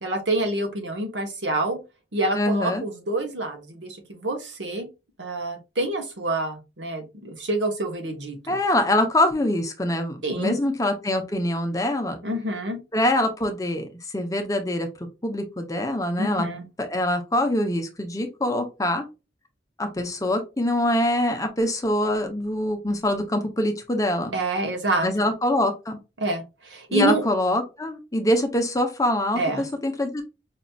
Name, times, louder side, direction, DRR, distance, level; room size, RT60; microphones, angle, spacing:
voice 1, 0.0-1.8 2.1-4.9 5.2-8.5 10.2-10.7 12.2-12.8 16.2-16.6 24.3-25.1 26.2-27.2 29.4-29.7, right 2 dB, 80° right, 4 dB, 1.1 m, -27 dB
voice 2, 2.3-2.8 8.5-12.2 12.9-14.9 15.2-16.5 16.8-19.0 19.8-24.3 25.0-26.0 26.9-30.2, left 1 dB, 20° left, 5 dB, 0.6 m, -24 dB
5.0 x 2.8 x 2.3 m, 0.27 s
head